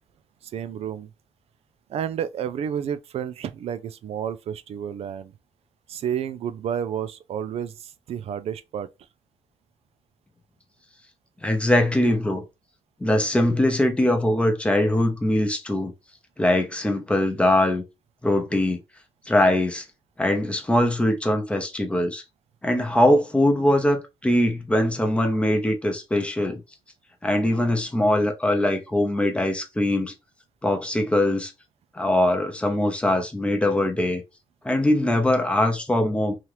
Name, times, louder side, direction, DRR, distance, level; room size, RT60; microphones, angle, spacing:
voice 1, 0.4-1.1 1.9-5.3 5.9-8.9, right 8 dB, 65° right, 0.4 m, -30 dB
voice 2, 11.4-12.4 13.0-15.9 16.4-17.8 18.2-18.8 19.3-19.8 20.2-22.2 22.6-26.6 27.2-30.1 30.6-31.5 31.9-34.2 34.6-36.3, left 1 dB, 10° left, 0.6 m, -22 dB
2.8 x 2.4 x 3.2 m
cardioid pair, 135°, 11 cm